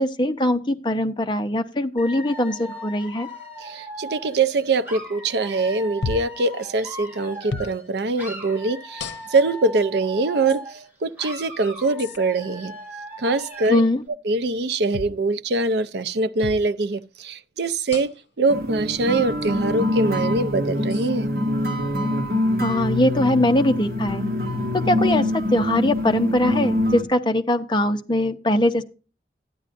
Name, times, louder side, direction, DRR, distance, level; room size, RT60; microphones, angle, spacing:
voice 1, 0.0-3.3 13.7-14.0 22.6-24.2 24.7-28.8, left 1 dB, 25° left, 0.7 m, -21 dB
Dog / Alarm, 2.0-7.9 8.2-10.9 11.2-13.9, equal, 10° right, 2.6 m, -38 dB
voice 2, 3.6-10.6 11.0-12.7 13.2-13.8 14.2-21.3, right 3 dB, 70° right, 0.5 m, -23 dB
sound 1, 6.0-6.4 7.5-7.8 9.0-9.5 10.5-10.6 12.0-12.2 14.9-15.2 16.4-16.7 17.9-18.3 19.4-19.5 20.9-21.1, left 4 dB, 85° left, 0.7 m, -32 dB
sound 2, 18.5-27.0, left 1 dB, 55° right, 1.6 m, -25 dB
13.0 x 10.0 x 2.6 m
head